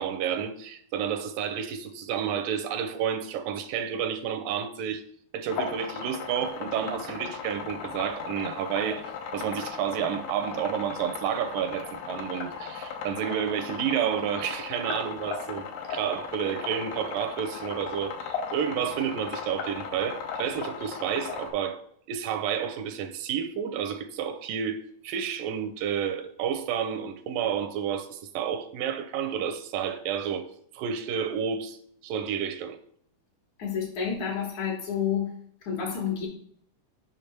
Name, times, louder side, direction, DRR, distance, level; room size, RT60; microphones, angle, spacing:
voice 1, 0.0-5.0 5.3-21.8 22.1-32.8, right 8 dB, 80° right, 2.2 m, -30 dB
sound 1, 5.5-21.5, left 6 dB, 85° left, 2.7 m, -37 dB
voice 2, 33.6-35.3 35.6-36.3, left 7 dB, 60° left, 2.8 m, -29 dB
6.6 x 5.4 x 4.4 m
omnidirectional pair, 4.0 m